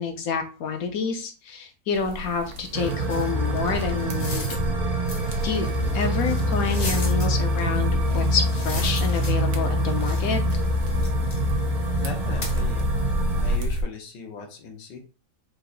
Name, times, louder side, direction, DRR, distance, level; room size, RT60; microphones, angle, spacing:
voice 1, 0.0-4.6 5.4-5.7 5.9-10.4, left 5 dB, 65° left, 6 dB, 1.0 m, -28 dB
sound 1, 1.9-13.8, equal, 55° right, 1.0 m, -32 dB
sound 2, 2.7-13.6, equal, 30° right, 0.7 m, -25 dB
sound 3, 3.1-4.7 5.0-7.3 8.1-9.7 10.0-11.5 12.4-12.6, left 2 dB, 40° left, 0.6 m, -38 dB
voice 2, 12.0-12.9 13.4-15.0, left 5 dB, 80° left, 4 dB, 1.6 m, -38 dB
4.7 x 2.5 x 3.9 m, 0.35 s
omnidirectional pair, 1.8 m